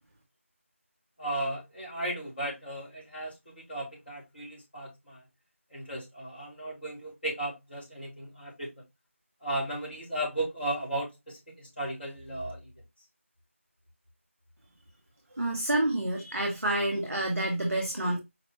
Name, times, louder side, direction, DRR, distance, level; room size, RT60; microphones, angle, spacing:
voice 1, 1.2-5.2 5.7-8.7 9.4-12.7, right 1 dB, 45° left, 2.6 m, -35 dB
voice 2, 15.3-18.2, right 1 dB, ahead, 0.4 m, -28 dB
4.9 x 3.2 x 2.9 m
figure-of-eight pair, 175°, 7 cm